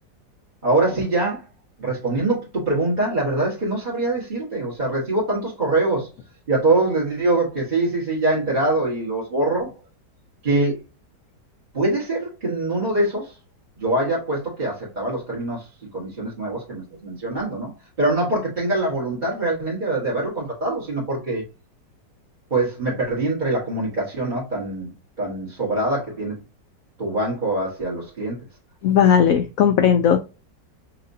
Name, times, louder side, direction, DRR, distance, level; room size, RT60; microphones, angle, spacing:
voice 1, 0.6-1.4 1.8-6.1 6.5-9.7 10.4-10.8 11.7-13.3 13.8-15.7 15.9-17.7 18.0-21.4 22.5-24.9 25.2-26.4 27.0-28.4, right 2 dB, 25° right, 1.4 m, -23 dB
voice 2, 28.8-30.2, left 8 dB, 80° left, 0.7 m, -16 dB
5.7 x 2.8 x 2.6 m
omnidirectional pair, 2.0 m